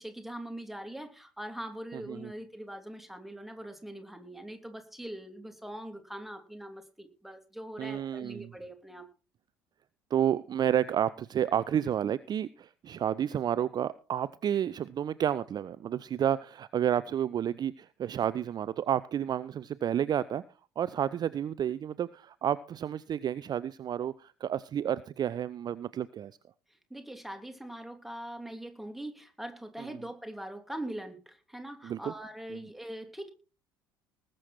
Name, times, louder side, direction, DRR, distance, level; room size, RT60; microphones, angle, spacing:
voice 1, 0.0-9.1 26.9-33.3, right 1 dB, ahead, 3.2 m, -42 dB
voice 2, 1.9-2.3 7.8-8.5 10.1-20.4 20.8-26.3 31.8-32.0, right 9 dB, 35° right, 0.6 m, -30 dB
20.0 x 7.7 x 4.5 m
figure-of-eight pair, 60°, 11 cm